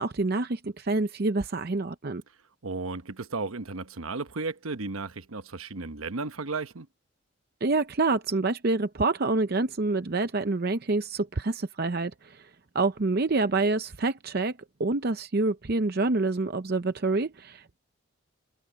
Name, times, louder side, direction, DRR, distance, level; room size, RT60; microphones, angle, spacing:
voice 1, 0.0-2.2 7.6-12.5 12.7-17.8, right 3 dB, 50° right, 0.7 m, -27 dB
voice 2, 2.6-6.9, right 3 dB, 85° right, 1.1 m, -34 dB
head